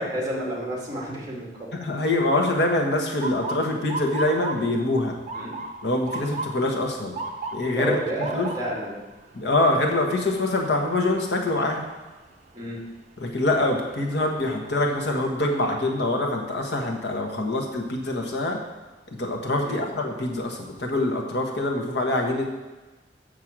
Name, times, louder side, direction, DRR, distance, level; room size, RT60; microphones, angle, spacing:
voice 1, 0.0-1.7 5.3-5.6 7.7-9.0 12.5-12.8 19.6-19.9, right 1 dB, 20° right, -3 dB, 2.4 m, -30 dB
voice 2, 1.8-5.1 5.8-7.2 7.5-8.5 9.3-11.9 13.2-18.6 19.1-22.5, left 2 dB, 70° left, 1 dB, 1.4 m, -25 dB
Motor vehicle (road) / Siren, 3.2-15.1 15.5-16.0 16.8-17.1 18.9-19.2 19.7-19.8 20.2-20.9, right 3 dB, 40° right, 0.8 m, -38 dB
6.6 x 6.4 x 7.4 m, 1.2 s
head